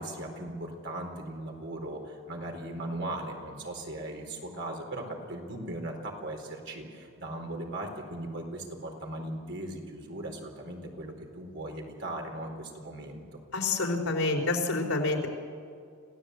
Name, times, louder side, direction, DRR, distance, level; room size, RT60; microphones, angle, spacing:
voice 1, 0.0-13.4, right 1 dB, 55° right, 2 dB, 4.2 m, -38 dB
voice 2, 13.5-15.3, left 3 dB, 75° left, 2 dB, 4.0 m, -28 dB
27.0 x 17.0 x 8.2 m, 2.4 s
head